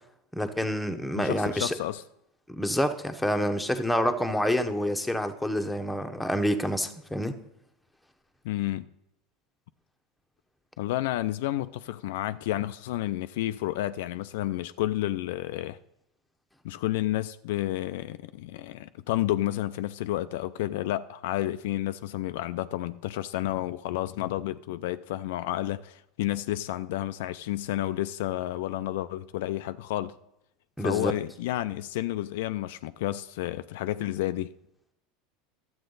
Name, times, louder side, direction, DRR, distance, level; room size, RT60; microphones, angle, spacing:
voice 1, 0.3-1.8 2.5-7.4 30.8-31.1, equal, ahead, 0.9 m, -27 dB
voice 2, 1.2-2.0 8.4-8.9 10.8-15.8 16.6-30.1 30.8-34.5, left 14 dB, 70° left, 0.3 m, -31 dB
11.5 x 7.6 x 3.9 m
hypercardioid pair, 90°, 0 cm